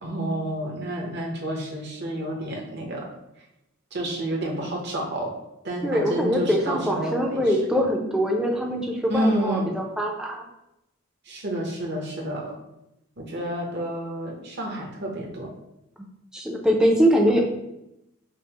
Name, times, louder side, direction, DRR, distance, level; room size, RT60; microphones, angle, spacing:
voice 1, 0.0-3.1 3.9-5.3 5.6-7.6 9.1-9.7 11.2-12.5 13.2-15.5, right 1 dB, 50° right, -1 dB, 0.8 m, -29 dB
voice 2, 5.8-10.4 16.3-17.4, equal, 5° right, 0 dB, 0.4 m, -23 dB
5.2 x 2.0 x 2.9 m, 0.86 s
head